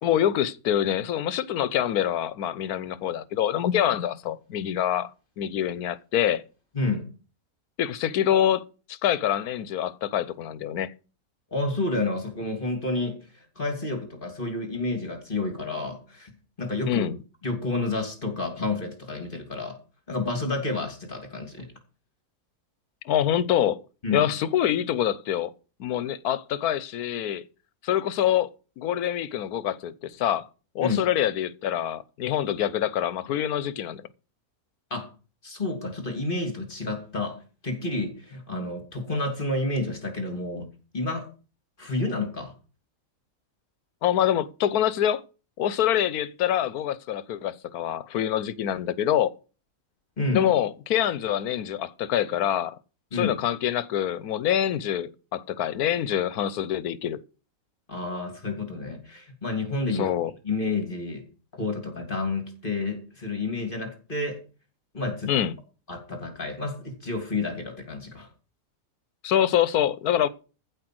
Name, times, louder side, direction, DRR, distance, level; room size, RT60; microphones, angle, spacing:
voice 1, 0.0-5.1 5.4-6.4 7.8-8.6 8.9-10.9 16.8-17.2 23.0-23.8 24.1-25.5 25.8-27.4 27.8-28.5 28.8-30.5 30.7-34.0 44.0-45.2 45.6-49.3 50.3-52.7 53.1-57.2 59.9-60.3 65.3-65.5 69.2-70.3, left 10 dB, 90° left, 1.3 m, -25 dB
voice 2, 6.7-7.1 11.5-16.3 16.6-17.0 17.4-19.8 20.1-21.7 24.0-24.3 30.8-31.0 34.9-35.1 35.4-40.7 40.9-41.3 41.8-42.5 50.2-50.5 53.1-53.4 57.9-60.1 60.4-61.2 61.5-64.4 64.9-65.3 65.9-68.3, left 2 dB, 35° left, 3.0 m, -30 dB
15.0 x 5.2 x 7.8 m
omnidirectional pair, 1.5 m